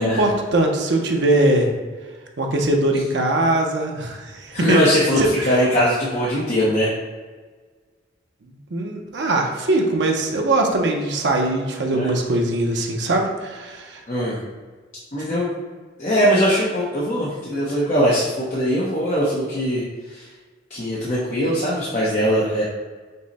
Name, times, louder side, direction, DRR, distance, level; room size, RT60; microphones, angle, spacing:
voice 1, 0.0-1.7 2.4-4.8 5.2-5.6 8.7-14.0, right 2 dB, 65° right, 1 dB, 0.6 m, -21 dB
voice 2, 4.5-5.2 5.5-6.9 11.9-12.1 12.7-12.8 14.1-14.4 15.1-15.5 16.0-20.3 20.7-22.6, equal, 40° left, -7 dB, 0.7 m, -21 dB
5.3 x 2.1 x 4.0 m, 1.4 s
head